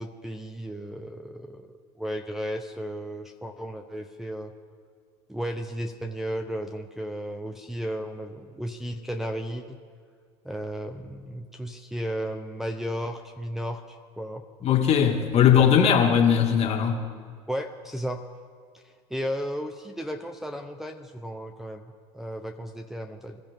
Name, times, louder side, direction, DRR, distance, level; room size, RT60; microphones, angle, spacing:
voice 1, 0.0-1.7 2.0-4.5 5.3-9.8 10.4-14.4 17.5-18.2 18.7-23.4, equal, ahead, 2 dB, 0.9 m, -34 dB
voice 2, 14.6-17.0, left 8 dB, 40° left, 3 dB, 2.2 m, -19 dB
26.5 x 13.0 x 3.7 m, 2.1 s
supercardioid pair, 105°, 16 cm